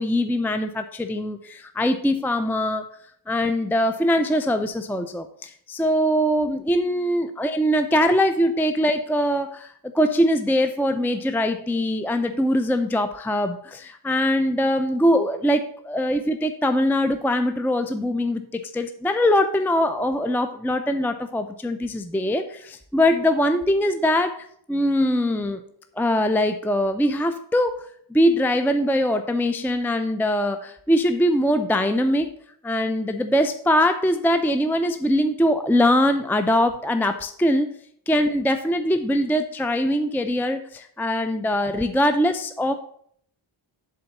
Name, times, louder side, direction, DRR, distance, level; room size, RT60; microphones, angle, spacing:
voice 1, 0.0-2.9 3.3-25.6 26.0-32.3 32.6-37.8 38.1-42.7, equal, 5° left, 8 dB, 0.5 m, -22 dB
8.1 x 3.9 x 6.7 m, 0.65 s
wide cardioid pair, 65°, 48 cm